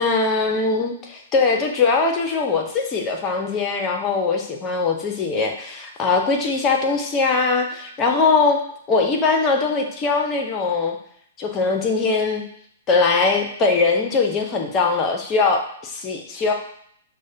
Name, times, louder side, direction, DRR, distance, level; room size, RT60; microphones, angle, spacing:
voice 1, 0.0-8.6 8.9-11.0 11.4-12.4 12.9-16.5, left 4 dB, 25° left, 2 dB, 0.7 m, -21 dB
6.1 x 2.2 x 2.7 m, 0.66 s
hypercardioid pair, 120°, 0 cm